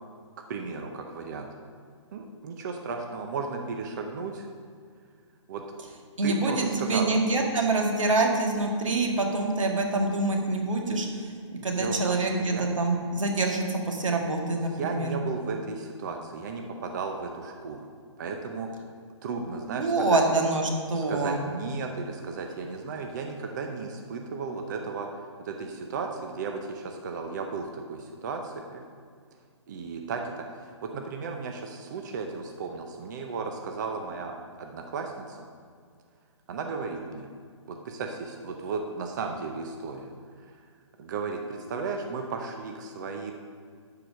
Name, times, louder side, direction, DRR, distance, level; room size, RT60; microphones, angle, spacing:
voice 1, 0.5-1.5 2.1-4.5 5.5-5.6 6.2-7.1 11.7-12.7 14.8-17.9 18.2-18.7 19.2-20.2 20.9-25.1 25.4-28.8 29.7-35.4 36.5-37.3 37.7-40.1 40.5-40.6 41.0-43.3, right 4 dB, 35° right, 3 dB, 0.7 m, -34 dB
voice 2, 6.2-11.3 11.6-15.1 19.8-21.4, right 2 dB, 90° right, 2 dB, 1.9 m, -26 dB
11.5 x 4.9 x 6.3 m, 2.1 s
hypercardioid pair, 160°, 16 cm